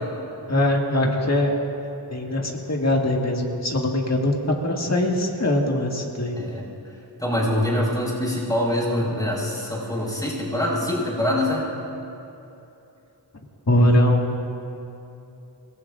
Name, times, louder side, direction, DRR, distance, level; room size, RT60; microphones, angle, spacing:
voice 1, 0.5-1.6 2.1-6.4 13.7-14.5, left 1 dB, 40° left, -1 dB, 1.9 m, -22 dB
voice 2, 7.2-11.6, left 1 dB, 10° left, -6 dB, 4.6 m, -24 dB
26.0 x 20.5 x 2.5 m, 2.9 s
wide cardioid pair, 70°, 43 cm